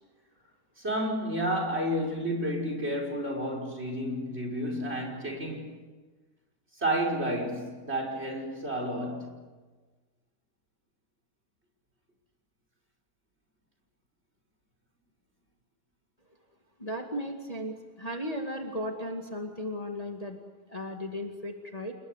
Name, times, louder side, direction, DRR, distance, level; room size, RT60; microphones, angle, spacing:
voice 1, 0.8-5.7 6.8-9.3, equal, 40° right, 5.9 m, -31 dB
voice 2, 16.8-20.4 20.7-21.9, equal, 20° left, 2.4 m, -35 dB
29.5 x 20.5 x 8.3 m
omnidirectional pair, 1.7 m